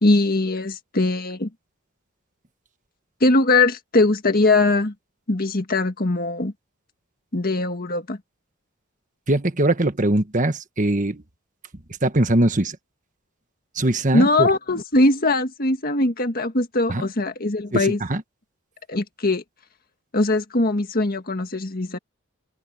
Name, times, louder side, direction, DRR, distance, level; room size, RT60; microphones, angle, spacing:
voice 1, 0.0-1.5 3.2-4.9 5.3-6.5 7.3-8.2 14.1-18.0 18.9-19.4 20.1-22.0, left 2 dB, 45° left, 1.8 m, -21 dB
voice 2, 9.3-11.2 12.0-12.8 13.7-14.5 16.9-17.1 17.7-18.2, right 1 dB, 35° right, 1.5 m, -21 dB
open air
head